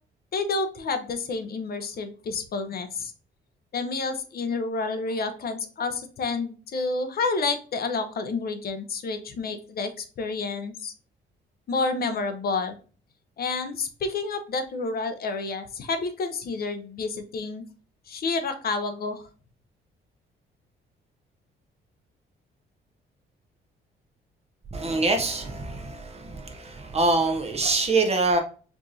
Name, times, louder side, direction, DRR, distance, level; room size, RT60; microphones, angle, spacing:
voice 1, 0.3-3.1 3.7-10.9 11.7-12.7 13.4-17.6 18.1-19.3, left 3 dB, 50° left, 0.6 m, -29 dB
voice 2, 24.7-28.4, right 3 dB, 30° right, 0.7 m, -25 dB
4.7 x 2.5 x 2.6 m
cardioid pair, 90°, 20 cm